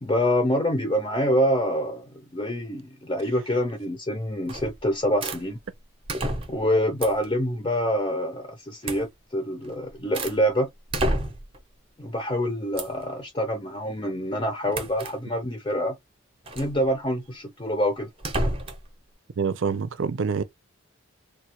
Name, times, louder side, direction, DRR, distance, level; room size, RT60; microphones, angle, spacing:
voice 1, 0.0-5.6 6.5-10.7 12.0-16.0 16.6-18.1, equal, 25° left, 0.6 m, -26 dB
sound 1, 4.5-4.8 5.2-5.4 6.1-6.7 7.0-7.3 8.8-9.1 9.6-10.4 10.9-11.6 12.8-13.0 14.7-15.2 16.5-16.8 18.2-18.9, right 1 dB, 25° right, 0.7 m, -29 dB
voice 2, 19.4-20.4, right 5 dB, 75° right, 0.5 m, -26 dB
3.3 x 2.3 x 2.9 m
head